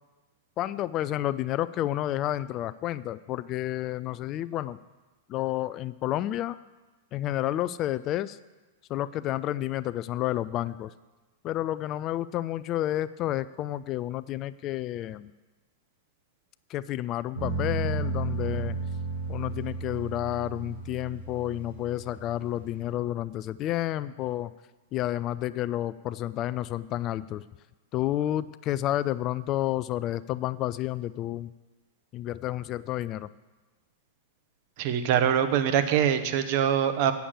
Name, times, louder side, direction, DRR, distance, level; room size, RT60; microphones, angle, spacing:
voice 1, 0.6-4.8 5.3-6.6 7.1-8.4 8.9-10.9 11.4-15.3 16.7-18.8 19.3-24.5 24.9-27.4 27.9-31.5 32.1-33.3, left 13 dB, 35° left, 15 dB, 0.3 m, -30 dB
sound 1, 17.3-22.9, right 3 dB, 85° right, 4.1 m, -34 dB
voice 2, 34.8-37.1, right 9 dB, 45° right, 9 dB, 0.9 m, -23 dB
8.5 x 7.0 x 8.4 m, 1.2 s
figure-of-eight pair, 95°, 0 cm